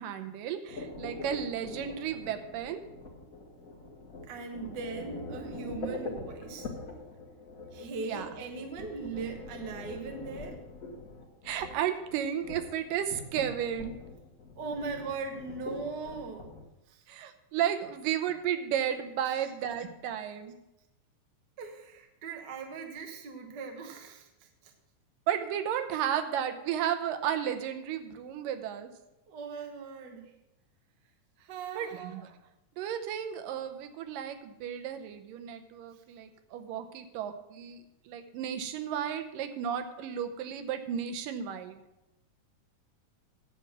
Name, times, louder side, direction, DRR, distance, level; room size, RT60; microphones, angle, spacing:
voice 1, 0.0-2.8 8.0-8.3 11.4-14.0 17.1-20.5 25.3-28.9 31.8-32.3 32.8-37.8 38.1-41.8, right 9 dB, 85° right, 7 dB, 2.5 m, -33 dB
sound 1, 0.7-16.7, left 2 dB, 70° left, 0.8 m, -43 dB
voice 2, 4.3-6.7 7.7-10.6 14.5-16.5 16.9-17.1 19.4-19.5 21.6-24.7 29.3-30.3 31.4-32.1 35.9-36.0, right 4 dB, 55° right, 4 dB, 1.2 m, -39 dB
9.9 x 7.9 x 6.1 m, 0.92 s
omnidirectional pair, 3.8 m